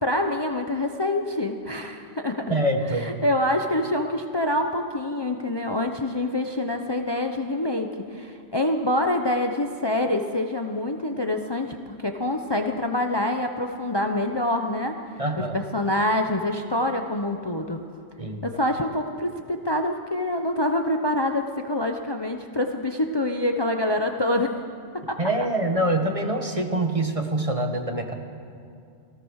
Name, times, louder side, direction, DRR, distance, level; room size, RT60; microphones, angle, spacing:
voice 1, 0.0-2.6 2.9-14.9 15.4-17.8 18.4-24.5 25.1-25.2, left 1 dB, 25° left, 4 dB, 0.9 m, -26 dB
voice 2, 2.5-3.1 15.2-15.6 18.2-18.4 25.2-28.1, right 1 dB, 30° right, 4 dB, 1.6 m, -25 dB
27.5 x 17.5 x 6.5 m, 2.5 s
omnidirectional pair, 1.2 m